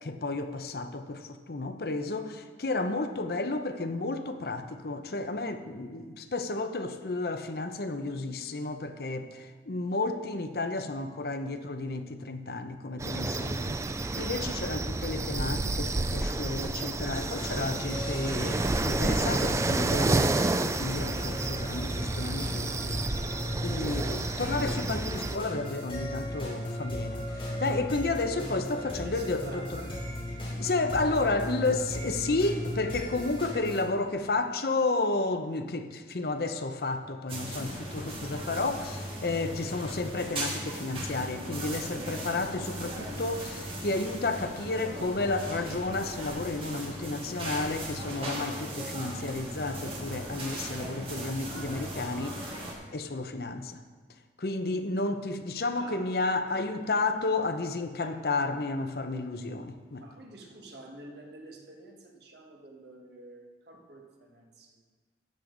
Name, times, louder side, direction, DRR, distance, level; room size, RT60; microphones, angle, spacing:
voice 1, 0.0-23.0 23.6-29.8 30.4-53.8 54.4-60.0, left 3 dB, 60° left, 8 dB, 0.7 m, -32 dB
sound 1, 13.0-25.4, right 2 dB, 15° right, 0.3 m, -30 dB
sound 2, 17.1-33.8, left 1 dB, 30° left, 3.3 m, -36 dB
voice 2, 28.6-30.3 55.8-56.2 56.5-56.9 57.4-57.5 58.0-58.3 60.0-64.8, right 1 dB, 70° right, 1 dB, 1.5 m, -49 dB
sound 3, 37.3-52.7, right 1 dB, 30° right, 1.9 m, -38 dB
13.5 x 8.6 x 3.9 m, 1.4 s
head